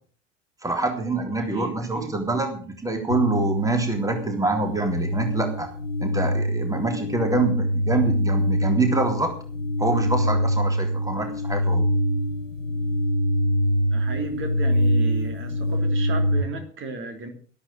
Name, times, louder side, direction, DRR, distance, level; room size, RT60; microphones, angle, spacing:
voice 1, 0.6-5.7 6.0-9.3 9.8-11.9, right 2 dB, 10° right, 5 dB, 3.5 m, -25 dB
voice 2, 1.5-2.1 13.9-17.3, right 4 dB, 30° right, 5 dB, 3.4 m, -34 dB
sound 1, 3.1-16.4, equal, 85° left, 1.0 m, -24 dB
13.0 x 13.0 x 6.4 m, 0.43 s
figure-of-eight pair, 75°, 37 cm